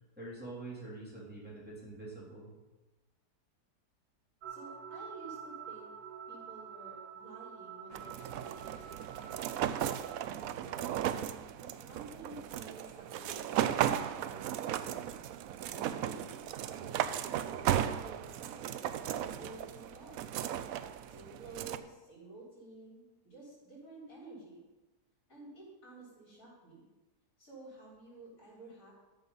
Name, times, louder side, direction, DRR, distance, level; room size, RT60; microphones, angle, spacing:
voice 1, 0.2-2.5, right 2 dB, 5° right, -7 dB, 3.1 m, -45 dB
sound 1, 4.4-10.3, right 7 dB, 90° right, 1.4 m, -47 dB
voice 2, 4.5-5.9 6.3-8.8 9.2-11.0 11.6-15.2 15.7-20.2 21.1-24.6 25.3-26.9 27.4-28.9, right 2 dB, 55° left, -5 dB, 4.4 m, -52 dB
sound 2, 7.9-21.8, right 10 dB, 70° right, 0.9 m, -36 dB
13.5 x 5.5 x 5.6 m, 1.1 s
omnidirectional pair, 1.8 m